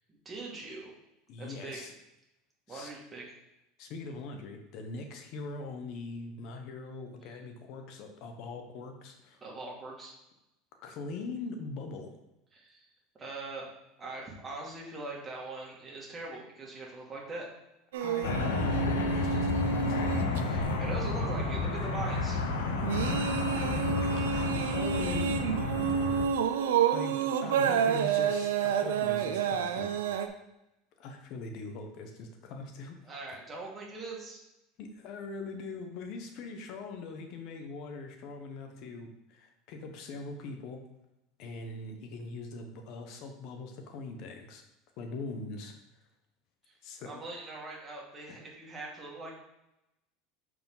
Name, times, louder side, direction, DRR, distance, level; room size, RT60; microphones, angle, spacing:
voice 1, 0.1-0.9 1.4-1.8 2.7-3.3 7.3-7.4 9.4-10.1 12.5-12.9 13.2-13.7 14.0-17.5 20.5-22.4 33.0-34.4 46.6-46.7 47.1-49.4, right 3 dB, 20° right, -3 dB, 2.3 m, -42 dB
voice 2, 1.3-1.9 2.7-2.9 3.8-9.4 10.8-12.1 18.0-20.3 23.6-23.7 24.0-25.4 26.9-30.0 31.0-33.1 34.8-40.8 41.4-44.6 45.0-45.7 46.8-47.2 48.3-48.4, left 3 dB, 60° left, 5 dB, 1.0 m, -41 dB
sound 1, 17.9-30.3, right 7 dB, 85° right, 0.6 m, -30 dB
sound 2, 18.2-26.3, left 3 dB, 85° left, 0.8 m, -31 dB
6.8 x 4.8 x 3.9 m, 0.90 s
supercardioid pair, 105°, 0 cm